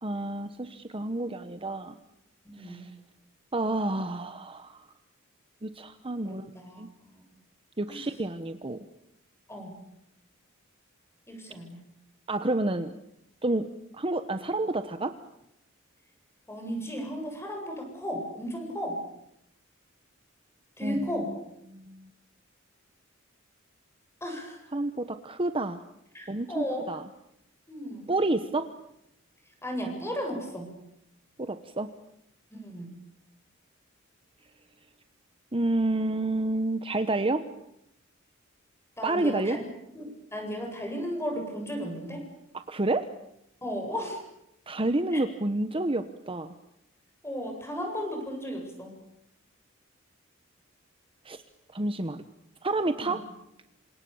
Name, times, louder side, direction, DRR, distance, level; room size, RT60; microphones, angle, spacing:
voice 1, 0.0-1.9 2.6-2.9 3.5-4.8 5.6-6.5 6.8-6.9 7.8-8.8 12.3-12.9 13.4-13.7 13.9-15.1 20.8-21.4 21.7-22.0 24.7-25.8 26.3-27.0 28.1-28.7 31.4-31.9 35.5-37.4 39.0-39.6 42.7-43.1 44.7-46.5 51.2-51.4 51.7-52.2 52.6-53.2, right 2 dB, 25° right, 10 dB, 1.1 m, -29 dB
voice 2, 2.4-2.8 6.2-6.8 7.1-7.2 7.9-8.0 9.5-9.8 11.3-11.8 16.5-19.0 20.8-21.3 24.2-24.6 26.1-26.8 27.7-28.1 29.6-30.7 32.6-32.9 39.0-39.7 39.9-42.2 43.6-44.2 45.1-45.2 47.2-48.9 53.0-53.2, equal, 15° left, 3 dB, 7.8 m, -35 dB
28.0 x 27.0 x 7.2 m, 0.80 s
head